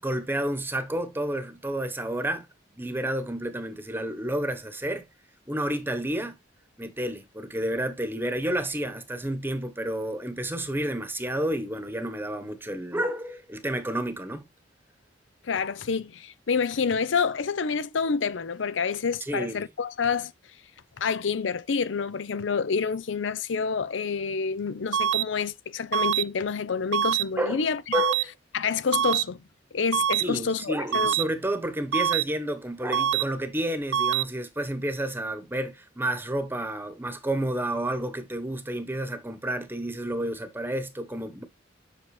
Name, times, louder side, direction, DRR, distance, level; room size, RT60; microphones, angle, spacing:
voice 1, 0.0-5.1 5.5-6.4 6.8-14.5 19.3-19.7 27.4-27.6 27.9-28.3 30.2-41.4, right 1 dB, 10° right, 1.0 m, -30 dB
voice 2, 15.4-20.3 21.0-27.8 28.5-29.4 29.7-31.2, left 5 dB, 90° left, 0.6 m, -28 dB
sound 1, 24.9-25.2 25.9-26.2 26.9-27.2 27.9-28.2 28.9-29.2 29.9-30.2 30.9-31.2 31.9-32.2 32.9-33.2 33.9-34.2, right 9 dB, 75° right, 0.3 m, -24 dB
7.7 x 6.0 x 3.2 m
head